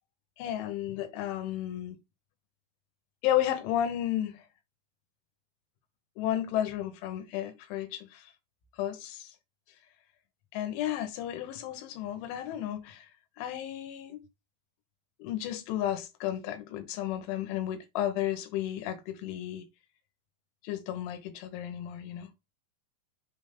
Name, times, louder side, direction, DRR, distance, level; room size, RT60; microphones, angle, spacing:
voice 1, 0.4-2.0 3.2-4.5 6.2-8.3 8.8-9.3 10.5-13.1 13.4-14.2 15.2-19.7 20.6-22.3, left 11 dB, 80° left, 3.6 m, -33 dB
7.2 x 3.8 x 5.3 m
omnidirectional pair, 5.6 m